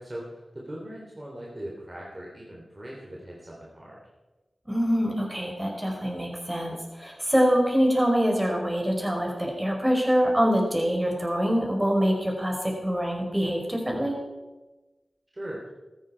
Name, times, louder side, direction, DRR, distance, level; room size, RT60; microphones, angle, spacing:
voice 1, 0.0-4.0 15.3-15.7, right 1 dB, 30° right, -4 dB, 3.8 m, -40 dB
voice 2, 4.7-14.2, equal, 15° right, 0 dB, 4.8 m, -25 dB
14.5 x 13.5 x 4.8 m, 1.1 s
cardioid pair, 50°, 0 cm